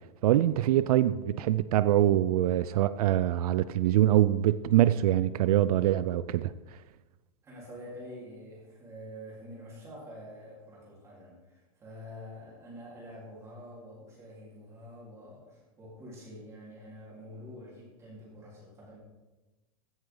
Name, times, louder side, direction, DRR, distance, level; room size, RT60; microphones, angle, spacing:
voice 1, 0.2-6.5, right 13 dB, 90° right, 0.5 m, -24 dB
voice 2, 7.4-19.0, equal, 15° right, 4.0 m, -47 dB
15.5 x 8.1 x 3.9 m
supercardioid pair, 170°, 19 cm